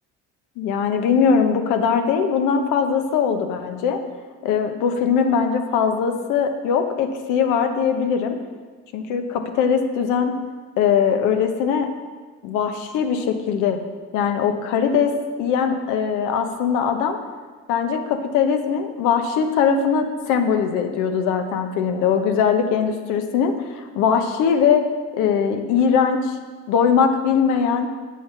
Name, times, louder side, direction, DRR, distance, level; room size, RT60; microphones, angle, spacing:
voice 1, 0.6-4.0 4.4-8.4 8.9-10.3 10.8-11.9 12.4-13.8 14.1-15.1 15.4-17.2 17.7-24.8 25.1-26.4 26.7-27.9, left 6 dB, 70° left, 6 dB, 1.1 m, -21 dB
8.3 x 6.3 x 5.9 m, 1.5 s
supercardioid pair, 85°, 31 cm